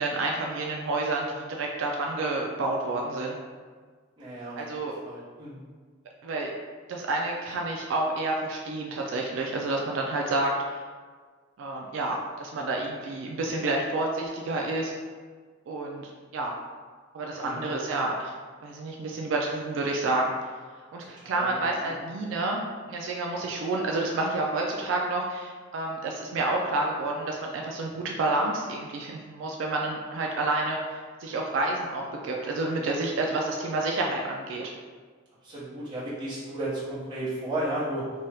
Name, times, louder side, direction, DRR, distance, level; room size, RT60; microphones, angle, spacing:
voice 1, 0.0-3.3 4.5-4.9 6.2-6.5 6.9-10.8 11.6-14.9 15.7-16.5 17.1-18.3 18.6-20.3 20.9-22.6 22.9-34.6, right 2 dB, 75° right, 0 dB, 0.3 m, -29 dB
voice 2, 4.2-4.8 5.0-5.6 17.4-17.7 21.2-22.0 35.4-38.0, right 1 dB, 25° right, -11 dB, 1.0 m, -34 dB
2.7 x 2.3 x 3.3 m, 1.5 s
head